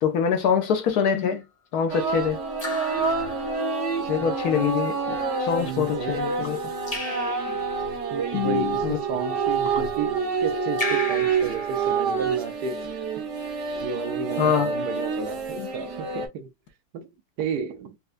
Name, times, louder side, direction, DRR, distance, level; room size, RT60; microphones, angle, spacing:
voice 1, 0.0-1.4 1.7-2.4 4.1-6.7 8.3-9.0 14.4-14.7 15.6-15.7, left 7 dB, 65° left, 1.1 m, -24 dB
Raindrop / Drip, 0.8-1.3 2.6-3.9 6.9-8.0 10.8-12.5, left 2 dB, 25° left, 0.9 m, -35 dB
sound 1, 1.9-16.3, right 5 dB, 50° right, 1.0 m, -27 dB
voice 2, 4.5-4.9 5.6-6.2 8.1-12.8 13.8-16.5 16.9-17.1 17.4-17.9, right 5 dB, 70° right, 1.2 m, -32 dB
4.3 x 2.2 x 2.4 m
omnidirectional pair, 1.9 m